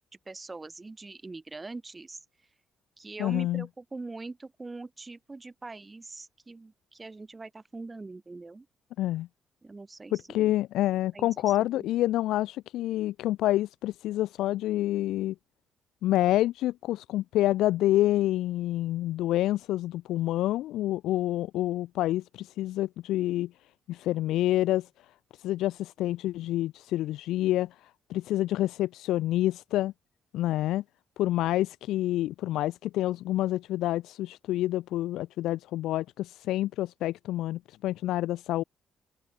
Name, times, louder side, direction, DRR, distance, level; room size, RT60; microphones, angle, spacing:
voice 1, 0.3-2.2 3.0-8.7 9.6-10.5 11.1-11.3 11.6-11.9, right 3 dB, 20° right, 4.9 m, -42 dB
voice 2, 3.2-3.7 9.0-9.3 10.1-15.4 16.0-23.5 23.9-24.9 25.4-29.9 30.3-30.8 31.2-38.6, left 15 dB, 90° left, 0.4 m, -28 dB
open air
cardioid pair, 90°, 0 cm